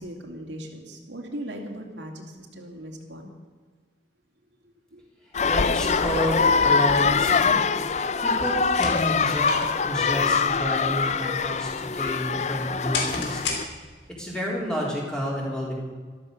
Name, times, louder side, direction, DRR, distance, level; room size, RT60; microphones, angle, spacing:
voice 1, 0.0-3.3 4.9-5.0, right 1 dB, 85° right, 1 dB, 2.7 m, -39 dB
sound 1, 5.3-13.6, left 5 dB, 40° left, 0.5 m, -23 dB
voice 2, 5.5-7.6 8.2-9.5 9.8-13.7 14.2-15.7, equal, 5° left, -4 dB, 3.7 m, -30 dB
sound 2, 8.6-14.2, left 2 dB, 75° left, 3.3 m, -35 dB
13.5 x 13.0 x 6.6 m, 1.5 s
head